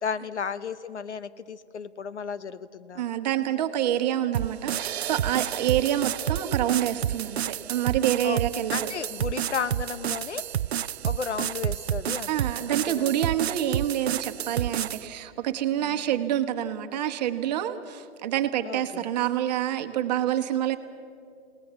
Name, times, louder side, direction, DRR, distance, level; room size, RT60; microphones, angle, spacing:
voice 1, 0.0-3.0 8.2-8.4 8.7-10.4 11.0-13.3 15.8-16.0 18.6-19.0, left 6 dB, 80° left, 14 dB, 1.0 m, -34 dB
voice 2, 2.9-8.9 12.3-20.8, right 11 dB, 40° right, 7 dB, 1.3 m, -27 dB
sound 1, 4.3-15.1, right 10 dB, 65° right, 0.5 m, -30 dB
29.0 x 19.0 x 7.1 m, 2.4 s
figure-of-eight pair, 130°, 34 cm